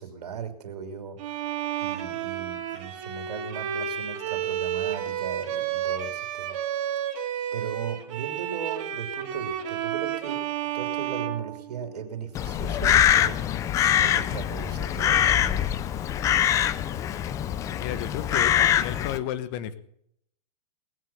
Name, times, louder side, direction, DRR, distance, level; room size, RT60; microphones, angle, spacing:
voice 1, 0.0-1.5 1.8-6.6 7.5-13.4 14.0-15.8, right 7 dB, 80° right, 6 dB, 3.1 m, -38 dB
Bowed string instrument, 1.2-12.2, right 10 dB, 55° right, 2.6 m, -31 dB
Crow, 12.3-19.2, left 10 dB, 15° left, 0.4 m, -23 dB
voice 2, 17.8-19.7, left 11 dB, 35° left, 13 dB, 1.1 m, -32 dB
19.0 x 7.7 x 7.1 m, 0.70 s
hypercardioid pair, 150°, 20 cm